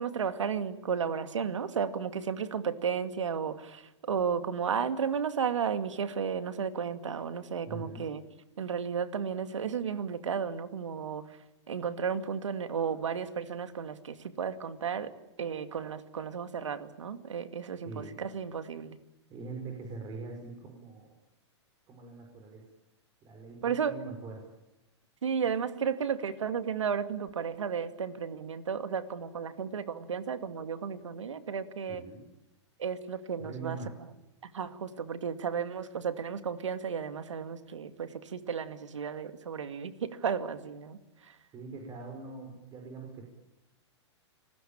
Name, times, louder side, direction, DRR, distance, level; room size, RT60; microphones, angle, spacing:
voice 1, 0.0-8.2 8.6-11.4 11.7-15.1 15.4-19.0 23.6-24.0 25.2-32.0 32.8-33.8 34.4-41.4, right 7 dB, 90° right, 10 dB, 2.3 m, -33 dB
voice 2, 7.7-8.1 17.8-18.2 19.3-21.1 21.9-22.7 23.2-24.5 31.9-32.3 33.4-34.0 41.5-43.3, right 4 dB, 25° right, 2 dB, 5.7 m, -43 dB
29.0 x 20.5 x 8.9 m, 0.97 s
hypercardioid pair, 130°, 15 cm